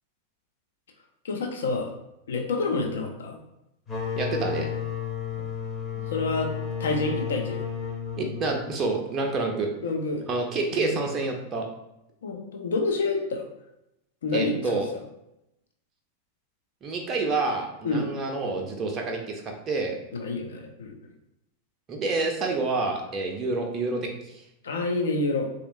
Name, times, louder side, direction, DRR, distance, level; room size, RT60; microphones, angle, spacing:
voice 1, 1.2-1.9 2.3-3.4 5.9-6.5 6.8-7.6 9.8-10.2 10.7-11.0 12.2-13.5 14.2-14.8 17.8-18.3 20.1-21.0 24.6-25.5, left 3 dB, 65° left, 2 dB, 0.5 m, -28 dB
sound 1, 3.9-9.3, left 7 dB, 20° left, 0.7 m, -32 dB
voice 2, 4.2-4.7 8.2-9.7 10.2-11.7 14.3-14.9 16.8-19.9 21.9-24.1, right 3 dB, 25° right, 1 dB, 0.5 m, -28 dB
3.4 x 2.7 x 2.5 m, 0.87 s
figure-of-eight pair, 90°, 0 cm